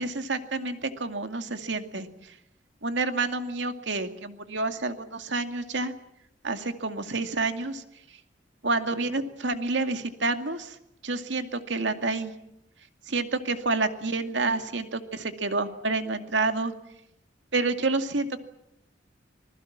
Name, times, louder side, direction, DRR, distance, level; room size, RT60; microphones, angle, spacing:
voice 1, 0.0-2.1 2.8-5.9 6.4-7.8 8.6-10.8 11.0-12.3 13.1-16.7 17.5-18.4, right 3 dB, 85° right, 7 dB, 2.3 m, -29 dB
26.5 x 20.5 x 7.4 m, 0.81 s
head